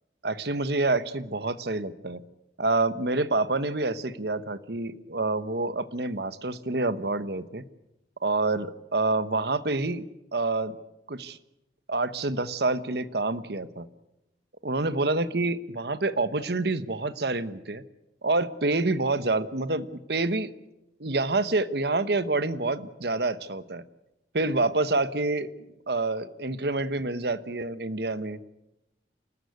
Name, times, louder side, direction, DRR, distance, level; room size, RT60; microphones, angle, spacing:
voice 1, 0.2-2.2 2.6-7.7 8.2-10.0 10.3-10.8 11.1-11.4 11.9-13.9 14.6-17.8 18.2-20.5 21.0-23.8 24.3-25.5 25.9-28.4, right 2 dB, 65° right, 13 dB, 1.1 m, -27 dB
29.0 x 13.0 x 9.6 m, 0.92 s
head